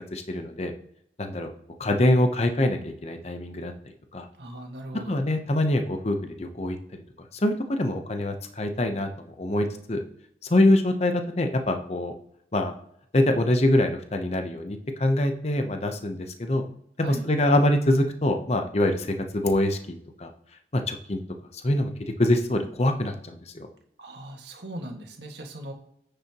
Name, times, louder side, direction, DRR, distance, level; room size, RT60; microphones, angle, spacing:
voice 1, 0.1-0.7 1.2-1.5 1.8-3.7 4.1-4.3 5.1-7.0 7.3-10.0 10.5-12.1 12.5-12.7 13.1-16.6 17.0-20.3 20.7-21.2 21.5-21.9 22.2-23.7, left 1 dB, 35° left, 6 dB, 0.8 m, -24 dB
voice 2, 4.4-5.1 17.0-17.2 24.0-25.7, right 1 dB, 75° right, 2 dB, 1.8 m, -38 dB
9.5 x 6.8 x 3.0 m, 0.72 s
head